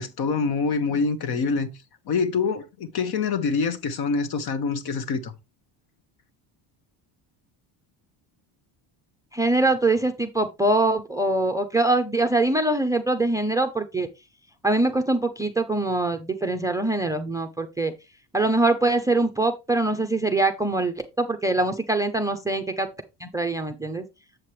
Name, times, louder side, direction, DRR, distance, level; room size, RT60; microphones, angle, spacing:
voice 1, 0.0-1.7 2.1-5.3, left 4 dB, 55° left, 1.3 m, -25 dB
voice 2, 9.3-14.1 14.6-17.9 18.3-22.9 23.2-24.1, right 2 dB, 10° right, 0.5 m, -23 dB
7.6 x 7.4 x 3.1 m
cardioid pair, 150°, 45 cm